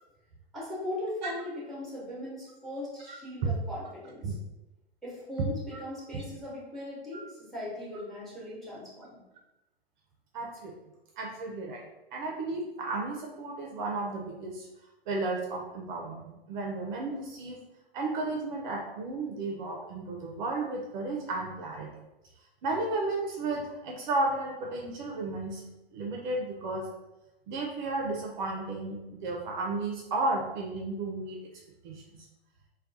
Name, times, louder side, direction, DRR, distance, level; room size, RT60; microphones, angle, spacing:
voice 1, 0.5-4.3 5.0-9.2, left 1 dB, ahead, -6 dB, 0.8 m, -39 dB
voice 2, 10.3-10.7 11.2-11.8 12.1-14.7 15.1-17.6 17.9-21.9 22.6-26.9 27.5-31.4 31.8-32.3, right 2 dB, 50° right, 0 dB, 0.5 m, -33 dB
2.3 x 2.2 x 2.5 m, 1.0 s
hypercardioid pair, 105°, 30 cm